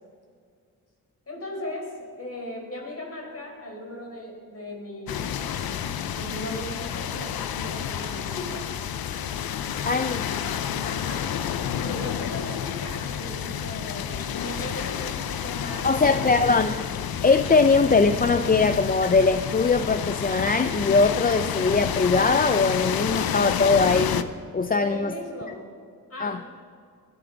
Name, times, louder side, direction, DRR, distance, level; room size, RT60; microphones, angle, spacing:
voice 1, 1.3-5.4 6.1-8.7 10.8-11.3 11.8-16.5 24.7-25.7 26.1-26.5, left 1 dB, 40° left, 1 dB, 4.7 m, -37 dB
sound 1, 5.1-24.2, left 9 dB, 80° left, 0.7 m, -30 dB
voice 2, 9.8-10.3 15.8-16.7 17.2-25.1 26.2-26.4, left 4 dB, 25° left, 9 dB, 0.5 m, -21 dB
20.5 x 13.5 x 4.0 m, 2.2 s
cardioid pair, 75°, 35 cm